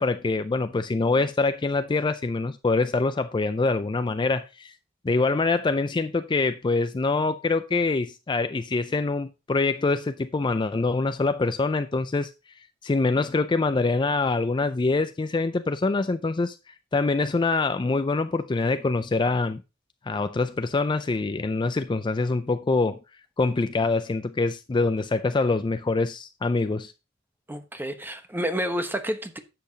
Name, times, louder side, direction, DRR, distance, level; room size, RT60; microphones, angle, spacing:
voice 1, 0.0-4.8 5.0-12.3 12.8-19.6 20.0-23.0 23.4-26.9, left 3 dB, 25° left, 0.4 m, -25 dB
voice 2, 27.5-29.4, equal, 10° right, 1.0 m, -29 dB
10.5 x 7.7 x 2.8 m
head